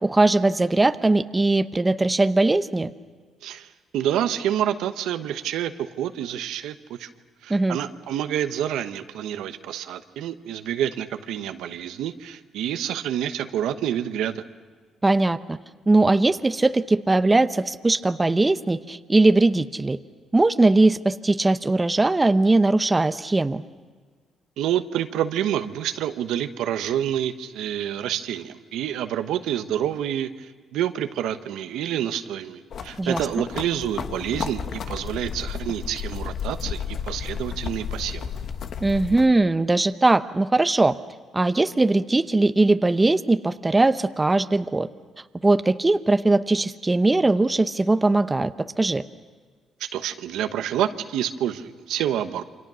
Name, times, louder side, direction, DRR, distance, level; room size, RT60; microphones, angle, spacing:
voice 1, 0.0-2.9 7.5-7.8 15.0-15.6 15.9-20.0 20.3-23.6 33.0-33.5 38.8-41.0 41.3-44.9 45.4-49.0, right 2 dB, 20° right, 11 dB, 0.8 m, -20 dB
voice 2, 3.4-7.1 7.4-14.4 24.6-38.3 49.8-52.4, right 10 dB, 85° right, 9 dB, 1.1 m, -28 dB
sound 1, 32.7-39.3, left 7 dB, 60° left, 1.2 m, -33 dB
28.5 x 25.5 x 6.3 m, 1.6 s
cardioid pair, 90°, 0 cm